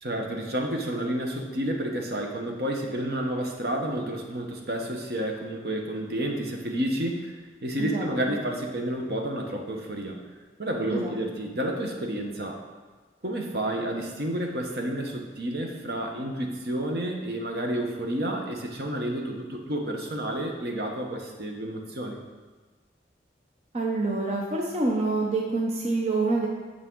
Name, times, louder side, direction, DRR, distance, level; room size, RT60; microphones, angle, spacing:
voice 1, 0.0-7.4 7.6-10.2 10.6-12.6 13.2-22.2, right 1 dB, 60° right, 2 dB, 1.0 m, -30 dB
voice 2, 7.8-8.4 10.9-11.1 23.7-26.5, right 3 dB, 35° right, -2 dB, 0.7 m, -27 dB
8.5 x 6.3 x 3.8 m, 1.4 s
head